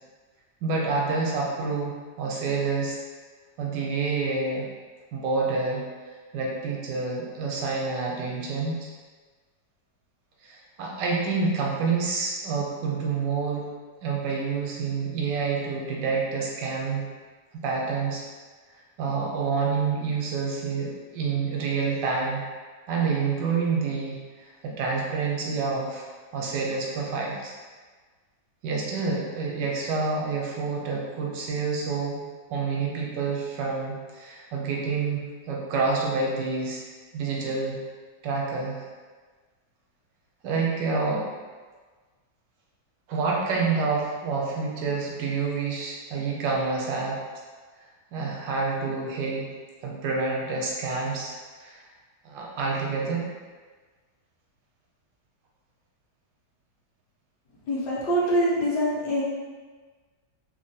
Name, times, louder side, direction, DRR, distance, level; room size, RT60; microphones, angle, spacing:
voice 1, 0.6-3.0 3.6-4.7 5.1-5.8 6.3-8.9 10.4-13.6 14.0-17.1 17.6-18.2 19.0-22.4 22.9-26.0 26.3-27.5 28.6-32.2 32.5-36.8 37.1-37.8 38.2-38.8 40.4-41.3 43.1-47.2 48.1-49.5 49.8-51.4 51.6-51.8 52.2-53.3, right 4 dB, 80° right, -2 dB, 1.3 m, -28 dB
voice 2, 57.7-59.2, equal, 70° left, -6 dB, 1.3 m, -24 dB
3.3 x 2.1 x 2.6 m, 1.4 s
omnidirectional pair, 1.9 m